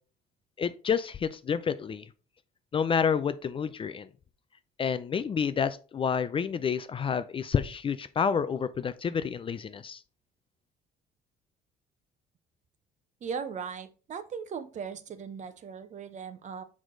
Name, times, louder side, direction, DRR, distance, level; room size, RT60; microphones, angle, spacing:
voice 1, 0.6-2.1 2.7-4.1 4.8-10.0, left 7 dB, 30° left, 0.4 m, -29 dB
voice 2, 13.2-16.6, right 6 dB, 45° right, 0.9 m, -38 dB
6.3 x 4.8 x 3.8 m
cardioid pair, 110°, 17 cm